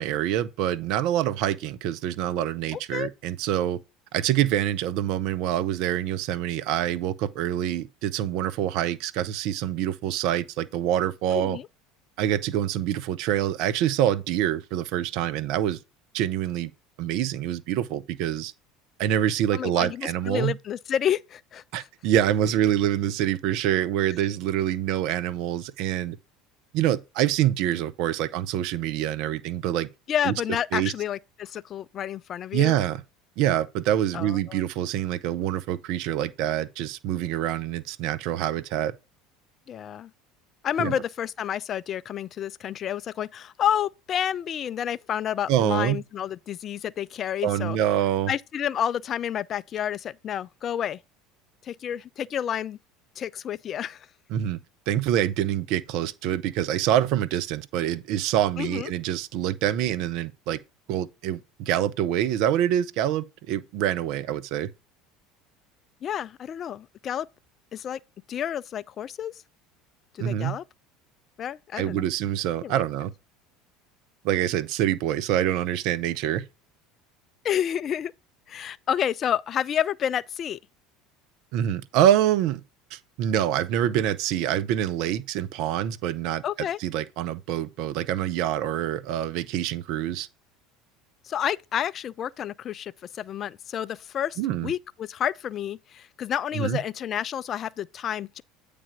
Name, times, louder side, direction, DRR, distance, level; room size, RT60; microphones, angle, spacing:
voice 1, 0.0-3.8 4.1-11.6 12.2-15.8 16.1-16.7 17.0-18.5 19.0-20.5 21.7-26.2 26.7-29.9 30.2-30.3 30.7-30.9 32.5-33.0 33.4-38.9 40.8-41.0 45.5-46.0 47.4-48.3 54.3-54.6 54.9-60.6 60.9-64.7 70.2-70.5 71.8-73.1 74.2-76.4 81.5-82.6 82.9-86.4 86.8-90.3 94.4-94.7 96.5-96.8, right 11 dB, 60° right, 0.6 m, -26 dB
voice 2, 2.7-3.1 11.3-11.7 19.5-21.9 30.1-32.8 34.1-34.7 39.7-40.1 40.6-47.8 48.3-51.0 51.6-52.8 53.2-54.1 58.6-58.9 66.0-67.3 67.7-68.0 68.3-69.4 70.1-70.6 71.4-72.1 72.6-72.8 77.4-78.1 78.5-80.6 86.4-86.8 91.2-98.4, left 9 dB, 40° left, 0.3 m, -30 dB
8.6 x 3.4 x 5.1 m
hypercardioid pair, 75°, 0 cm